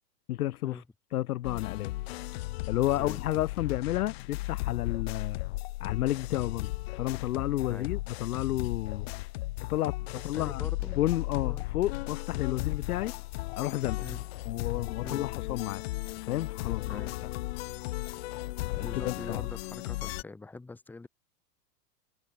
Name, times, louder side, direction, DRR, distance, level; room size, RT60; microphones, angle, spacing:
voice 1, 0.3-0.8 1.1-1.9 2.7-5.4 5.8-9.1 9.7-10.6 11.0-13.1 13.6-14.0 14.5-15.8 16.2-17.0 18.7-19.4, left 14 dB, 60° left, 0.9 m, -31 dB
sound 1, 1.4-20.2, left 20 dB, 40° left, 3.0 m, -35 dB
voice 2, 10.2-11.0 11.3-11.6 14.0-14.3 15.0-15.3 16.9-17.4 18.7-21.1, left 3 dB, 5° left, 2.0 m, -44 dB
supercardioid pair, 180°, 49 cm